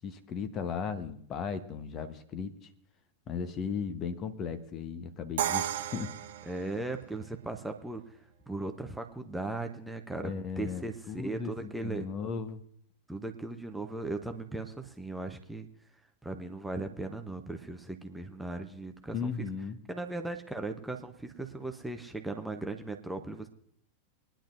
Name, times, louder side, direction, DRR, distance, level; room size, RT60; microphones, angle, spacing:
voice 1, 0.0-2.7 3.3-6.1 10.2-12.6 19.1-19.8, left 6 dB, 30° left, 11 dB, 1.1 m, -36 dB
Crash cymbal, 5.4-7.3, right 11 dB, 60° right, 0.7 m, -34 dB
voice 2, 6.5-8.1 8.5-12.1 13.1-15.7 16.2-19.5 19.9-23.5, right 2 dB, 5° right, 5 dB, 0.9 m, -38 dB
22.5 x 10.5 x 2.6 m, 0.62 s
figure-of-eight pair, 90°, 0 cm